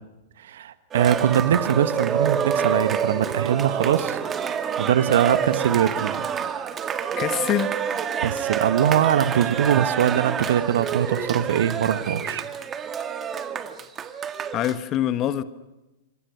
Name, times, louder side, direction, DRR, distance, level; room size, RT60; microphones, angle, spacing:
voice 1, 0.4-4.2 4.8-6.3 8.2-12.4, right 9 dB, 60° right, 12 dB, 1.4 m, -22 dB
Cheering, 0.9-14.8, right 7 dB, 20° right, 1.7 m, -27 dB
voice 2, 7.2-7.8 14.5-15.4, left 11 dB, 30° left, 11 dB, 1.4 m, -24 dB
27.0 x 26.5 x 6.4 m, 1.0 s
figure-of-eight pair, 100°, 0 cm